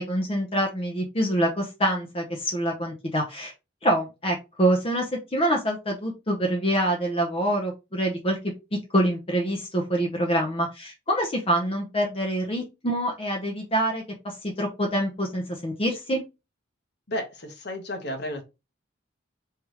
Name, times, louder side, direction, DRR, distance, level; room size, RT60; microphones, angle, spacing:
voice 1, 0.0-3.5 3.8-8.4 8.9-16.2, right 1 dB, 30° left, 0.9 m, -26 dB
voice 2, 17.1-18.4, equal, 60° left, 1.3 m, -32 dB
4.8 x 3.5 x 3.1 m
head